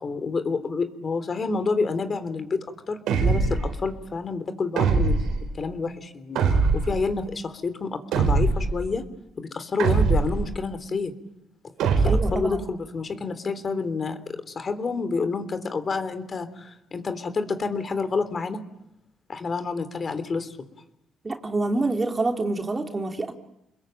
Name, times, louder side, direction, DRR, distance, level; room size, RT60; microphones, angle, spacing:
voice 1, 0.0-5.2 5.6-6.4 6.8-9.1 9.4-11.1 12.0-18.6 19.3-20.6, left 4 dB, 40° left, 11 dB, 3.3 m, -29 dB
sound 1, 3.1-3.7 4.8-5.4 6.4-7.0 8.1-8.8 9.8-10.5 11.8-12.4, right 4 dB, 85° right, 4.4 m, -22 dB
voice 2, 12.0-12.6 21.2-23.3, right 2 dB, 25° right, 3 dB, 3.2 m, -26 dB
29.5 x 21.5 x 9.0 m, 0.83 s
cardioid pair, 90°, 0 cm